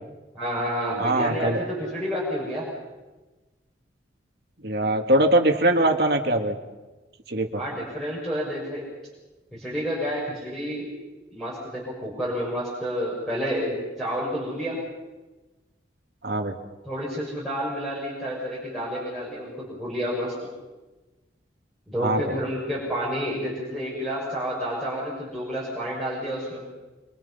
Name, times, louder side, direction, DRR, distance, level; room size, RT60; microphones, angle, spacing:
voice 1, 0.3-2.7 7.5-8.8 9.5-10.9 11.3-14.8 16.8-20.3 21.9-26.6, equal, ahead, -6 dB, 6.2 m, -30 dB
voice 2, 1.0-1.6 4.6-6.6 7.3-7.6 16.2-16.6 22.0-22.4, right 1 dB, 55° right, 4 dB, 2.3 m, -22 dB
26.0 x 25.5 x 5.7 m, 1.2 s
head